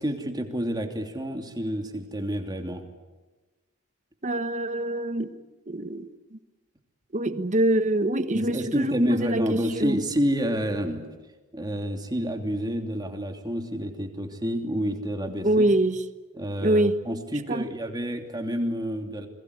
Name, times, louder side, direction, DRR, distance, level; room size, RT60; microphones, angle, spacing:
voice 1, 0.0-2.8 8.3-11.0 11.5-15.7 16.3-19.3, equal, 20° right, 4 dB, 2.9 m, -29 dB
voice 2, 4.2-5.3 5.7-6.1 7.1-10.0 15.4-16.0 16.6-17.0 17.5-17.7, right 1 dB, 35° right, 10 dB, 1.3 m, -24 dB
29.0 x 22.5 x 8.3 m, 1.2 s
head